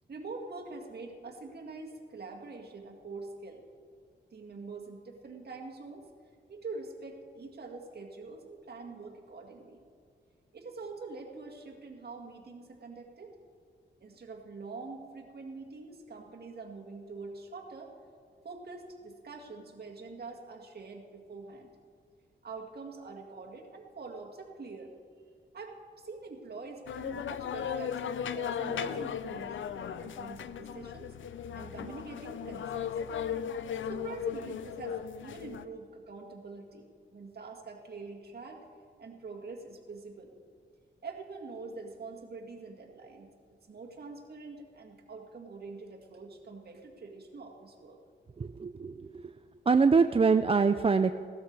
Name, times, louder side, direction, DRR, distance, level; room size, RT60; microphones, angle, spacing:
voice 1, 0.1-3.6 4.3-6.1 6.5-9.8 10.5-13.4 14.0-17.9 18.4-21.7 22.4-24.9 25.5-31.1 31.5-33.1 33.9-38.6 39.0-40.3 41.0-43.3 43.7-48.0, right 3 dB, 55° right, 1 dB, 1.9 m, -45 dB
sound 1, 26.9-35.6, left 8 dB, 85° left, 0.5 m, -36 dB
voice 2, 48.4-49.3 49.7-51.1, right 5 dB, 30° right, 9 dB, 0.4 m, -24 dB
17.0 x 12.5 x 4.7 m, 2.1 s
cardioid pair, 80°, 19 cm